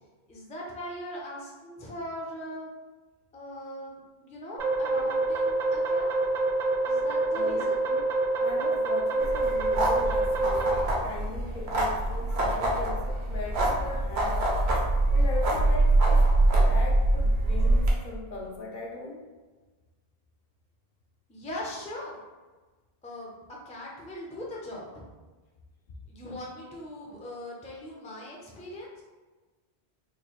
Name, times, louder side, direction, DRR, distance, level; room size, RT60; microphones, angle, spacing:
voice 1, 0.3-2.7 3.3-6.1 6.8-7.8 21.3-22.2 23.0-23.3 23.6-25.1 26.1-29.0, left 1 dB, 10° left, -3 dB, 0.3 m, -40 dB
sound 1, 4.6-10.8, right 2 dB, 50° right, 0.6 m, -26 dB
voice 2, 7.3-8.1 8.4-10.8 11.0-14.4 15.1-16.3 16.7-19.2, left 2 dB, 60° left, -2 dB, 0.6 m, -38 dB
sound 2, 9.2-17.9, right 2 dB, 80° right, 1.0 m, -24 dB
3.7 x 2.3 x 3.0 m, 1.3 s
omnidirectional pair, 1.1 m